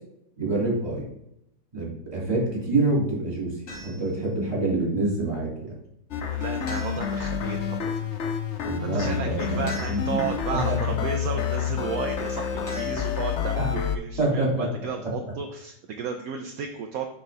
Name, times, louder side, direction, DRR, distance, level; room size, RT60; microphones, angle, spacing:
voice 1, 0.4-1.1 1.7-3.5 3.8-5.7 8.6-10.2 10.5-10.8 13.5-13.7 14.2-14.7 15.0-15.1, right 2 dB, 20° right, -4 dB, 3.1 m, -26 dB
sound 1, 3.7-4.2 6.7-7.4 9.7-10.4 12.7-13.5, left 1 dB, 90° left, 3.2 m, -40 dB
sound 2, 6.1-14.0, left 8 dB, 60° left, 0.7 m, -29 dB
voice 2, 6.3-8.0 8.9-17.1, right 6 dB, 65° right, 4 dB, 1.0 m, -33 dB
6.6 x 6.2 x 3.5 m, 0.79 s
omnidirectional pair, 2.0 m